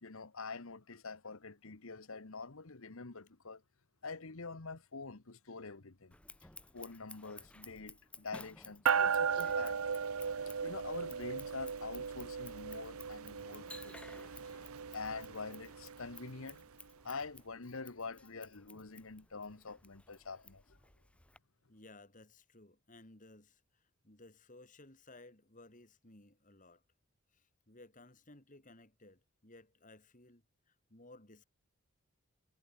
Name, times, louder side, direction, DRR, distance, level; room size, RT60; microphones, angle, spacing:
voice 1, 0.0-3.6 4.0-6.1 6.7-9.8 10.6-16.6 17.0-20.8, left 4 dB, 65° left, 1.3 m, -46 dB
Scissors, 6.1-21.4, left 2 dB, 5° left, 1.1 m, -56 dB
sound 1, 8.9-16.5, right 6 dB, 70° right, 0.7 m, -36 dB
voice 2, 21.7-26.8 27.3-31.4, left 2 dB, 35° left, 3.3 m, -58 dB
head